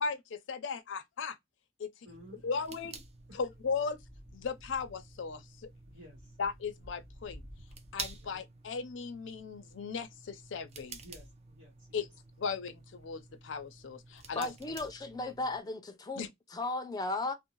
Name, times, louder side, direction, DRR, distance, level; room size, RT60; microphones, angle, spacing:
voice 1, 0.0-1.4 1.8-1.9 2.4-2.9 3.3-4.0 4.3-5.7 6.4-7.4 7.9-11.0 11.9-12.1 12.4-14.5 16.2-16.3, left 5 dB, 85° left, 0.5 m, -37 dB
voice 2, 2.0-2.4 2.7-2.8 3.3-3.4 5.9-6.4 8.2-8.4 11.0-12.1 14.4-14.9, equal, 85° right, 1.1 m, -55 dB
sound 1, 2.1-15.6, right 4 dB, 35° right, 0.5 m, -50 dB
sound 2, 3.0-8.4, equal, 5° right, 0.9 m, -55 dB
voice 3, 14.3-16.2 16.5-17.3, left 2 dB, 20° left, 0.4 m, -35 dB
2.6 x 2.0 x 2.9 m
head